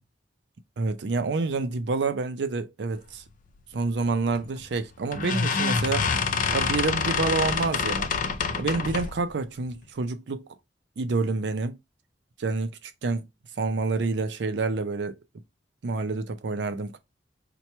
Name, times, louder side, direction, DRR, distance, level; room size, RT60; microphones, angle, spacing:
voice 1, 0.8-3.2 3.7-6.1 6.5-8.1 8.6-10.4 11.0-11.8 12.4-12.7 13.0-13.2 13.6-15.2 15.8-17.0, right 3 dB, 70° right, 0.5 m, -28 dB
sound 1, 4.4-4.6 5.1-9.2, left 5 dB, 50° left, 0.4 m, -26 dB
2.9 x 2.2 x 4.2 m
head